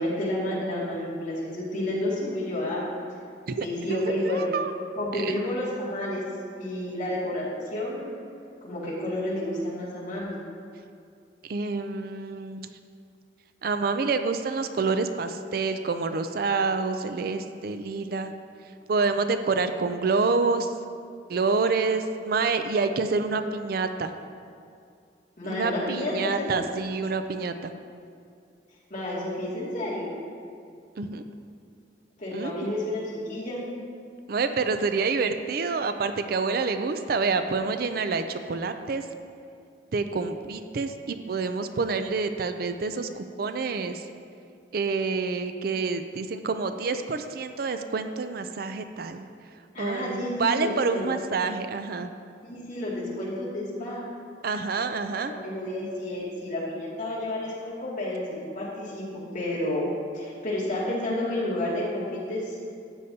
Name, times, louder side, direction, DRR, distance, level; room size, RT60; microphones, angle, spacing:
voice 1, 0.0-2.9 3.6-4.5 5.0-6.2 6.6-8.1 8.6-10.4 25.4-26.5 28.9-30.1 32.2-33.6 49.7-51.1 52.4-54.0 55.2-59.1 59.3-59.9 60.1-62.5, left 1 dB, 45° left, -7 dB, 2.4 m, -30 dB
voice 2, 3.5-4.7 5.1-5.4 11.4-12.7 13.6-18.3 18.9-20.8 21.3-24.1 25.4-27.7 31.0-31.2 32.3-32.7 34.3-39.1 39.9-44.0 44.7-49.3 49.8-52.1 54.4-55.3, right 4 dB, 55° right, 9 dB, 0.4 m, -27 dB
13.0 x 8.0 x 2.8 m, 2.3 s
head